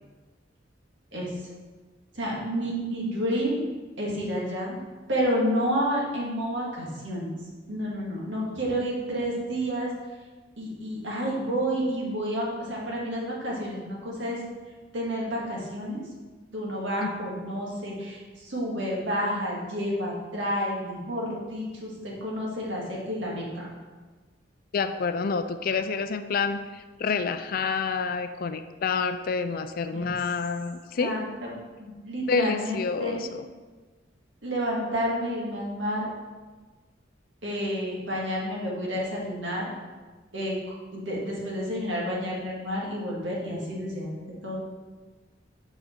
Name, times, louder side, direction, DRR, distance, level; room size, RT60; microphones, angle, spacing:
voice 1, 2.1-3.7 4.0-4.8 5.1-7.3 7.7-9.9 10.6-14.4 14.9-16.0 16.5-23.7 29.9-30.1 31.0-31.5 31.8-33.2 34.4-36.1 37.4-39.7 40.3-40.5 40.9-44.6, equal, 75° right, -4 dB, 1.8 m, -30 dB
voice 2, 24.7-31.2 32.3-33.5, left 5 dB, 50° left, 9 dB, 0.4 m, -28 dB
6.8 x 5.0 x 4.4 m, 1.3 s
head